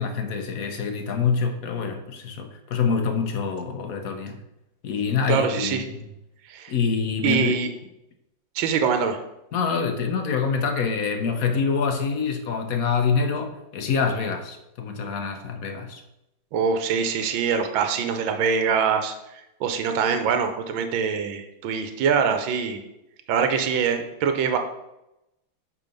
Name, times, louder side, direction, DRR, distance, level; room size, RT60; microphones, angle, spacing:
voice 1, 0.0-4.4 4.8-5.9 6.7-7.6 9.5-16.0, left 5 dB, 60° left, 5 dB, 1.0 m, -26 dB
voice 2, 5.3-5.8 6.5-6.7 7.2-7.7 8.5-9.2 16.5-19.1 19.6-22.8 23.3-24.6, right 6 dB, 75° right, 7 dB, 1.5 m, -24 dB
8.3 x 3.7 x 5.3 m, 0.88 s
omnidirectional pair, 2.2 m